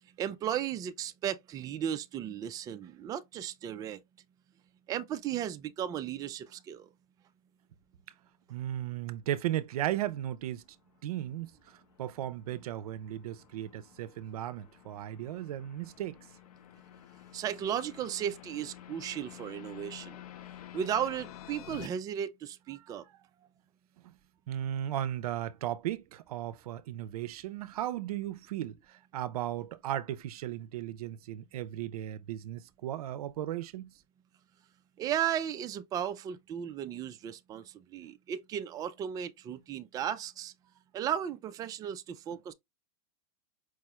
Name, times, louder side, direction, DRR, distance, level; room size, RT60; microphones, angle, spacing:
voice 1, 0.2-4.0 4.9-6.9 17.3-20.2 20.7-23.0 35.0-37.6 37.9-40.5 40.9-42.5, right 9 dB, 20° right, 0.3 m, -35 dB
voice 2, 8.5-10.6 11.0-16.2 22.8-22.9 24.0-24.1 24.5-33.9, right 12 dB, 85° right, 0.5 m, -36 dB
sound 1, 10.4-21.9, left 11 dB, 90° left, 0.5 m, -51 dB
4.8 x 2.3 x 3.0 m
supercardioid pair, 135°, 19 cm